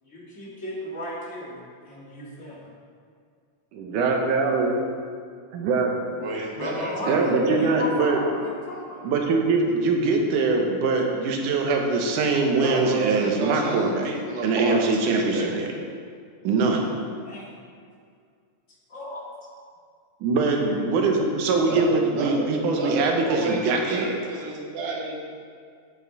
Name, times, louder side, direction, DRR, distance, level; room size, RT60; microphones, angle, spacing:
voice 1, 0.0-1.6 1.9-2.6 6.6-9.0 17.3-17.5 18.9-19.2 20.7-20.8, left 1 dB, 25° left, -5 dB, 1.9 m, -35 dB
voice 2, 3.7-4.8 5.5-5.9 7.1-8.2 9.0-14.1 14.4-15.7 16.4-16.9 20.2-24.1, right 3 dB, 85° right, 2 dB, 2.5 m, -22 dB
voice 3, 6.2-7.7 12.5-15.6 21.6-25.2, right 2 dB, 50° right, -3 dB, 0.8 m, -31 dB
9.8 x 8.3 x 4.1 m, 2.2 s
omnidirectional pair, 3.5 m